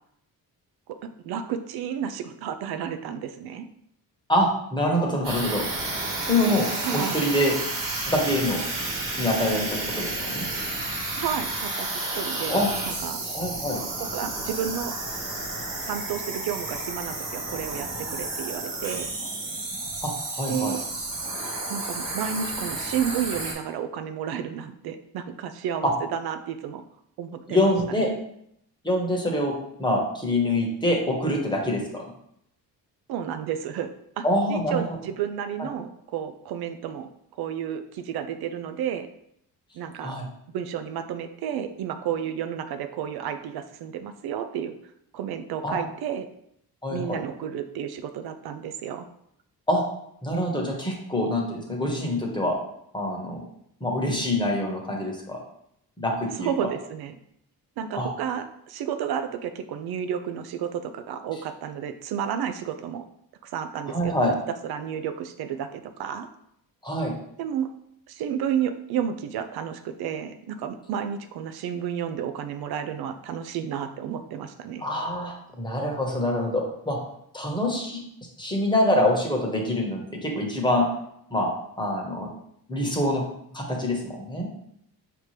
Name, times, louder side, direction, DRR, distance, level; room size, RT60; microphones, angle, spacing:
voice 1, 1.2-3.7 6.8-7.2 11.2-13.2 14.0-14.9 15.9-19.1 20.5-20.8 21.7-26.8 27.2-27.7 33.1-33.9 34.2-37.1 37.4-39.1 39.7-40.1 40.5-44.7 45.1-46.3 46.9-49.1 56.4-57.1 57.8-63.0 63.4-64.3 64.6-66.3 67.4-67.7 68.1-74.9, right 8 dB, 75° right, 9 dB, 0.5 m, -31 dB
voice 2, 4.3-5.6 6.2-7.5 8.1-8.7 9.2-10.5 12.5-12.7 13.2-13.8 20.0-20.8 25.8-25.9 27.5-28.1 28.8-29.5 29.8-32.1 34.2-34.8 40.0-40.3 45.6-45.8 46.8-47.2 49.7-49.8 50.2-52.5 52.9-53.4 53.8-55.4 56.0-56.5 57.9-58.1 63.9-64.3 66.8-67.2 74.8-77.0 77.3-78.0 78.4-80.9 81.3-81.5 81.8-82.3 82.7-83.2 83.5-84.5, left 1 dB, 10° left, -1 dB, 1.2 m, -25 dB
sound 1, 5.2-23.5, right 2 dB, 55° right, 1.4 m, -31 dB
5.1 x 2.9 x 3.2 m, 0.74 s
cardioid pair, 80°, 38 cm